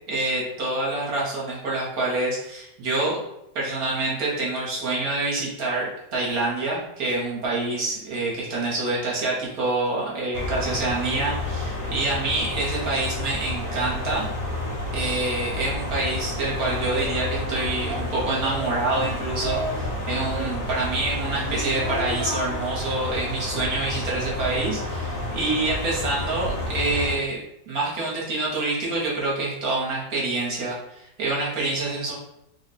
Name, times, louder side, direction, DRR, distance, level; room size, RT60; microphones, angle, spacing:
voice 1, 0.1-3.2 3.5-14.2 14.9-27.4 27.7-32.1, right 2 dB, 55° right, -5 dB, 1.3 m, -27 dB
sound 1, 10.3-27.2, left 1 dB, 60° left, 1.0 m, -30 dB
Singing, 16.6-19.8 20.2-22.5, right 2 dB, 75° right, 1.3 m, -35 dB
3.2 x 2.2 x 4.1 m, 0.81 s
omnidirectional pair, 2.1 m